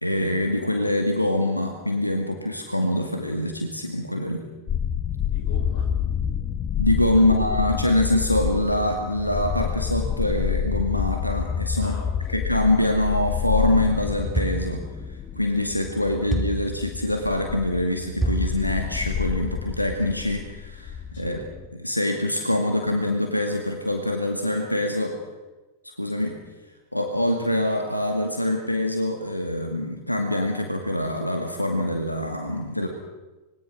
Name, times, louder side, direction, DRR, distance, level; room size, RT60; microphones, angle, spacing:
voice 1, 0.0-4.4 6.8-12.0 12.3-14.8 15.1-21.4 21.8-25.2 26.0-26.3 26.9-32.9, left 1 dB, 85° left, 3 dB, 2.1 m, -24 dB
sound 1, 4.7-21.7, left 8 dB, 25° left, 0.8 m, -29 dB
voice 2, 5.3-5.9 7.0-7.7 11.8-12.5 21.1-21.5, left 2 dB, 50° left, 3 dB, 7.1 m, -41 dB
sound 2, 14.4-14.8 16.3-16.7 18.2-18.6, right 1 dB, ahead, 4.5 m, -26 dB
25.5 x 21.5 x 6.4 m, 1.2 s
figure-of-eight pair, 90°, 0 cm